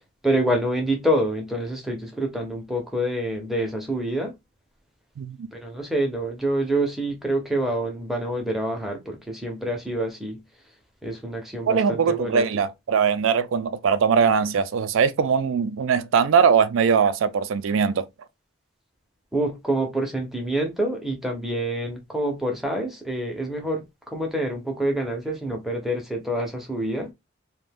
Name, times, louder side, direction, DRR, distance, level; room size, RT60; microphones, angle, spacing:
voice 1, 0.2-4.3 5.5-10.4 11.0-12.4 19.3-23.8 24.1-27.1, right 1 dB, ahead, 0.6 m, -27 dB
voice 2, 5.2-5.5 11.7-18.1, right 6 dB, 75° right, 0.3 m, -21 dB
2.5 x 2.2 x 3.3 m
head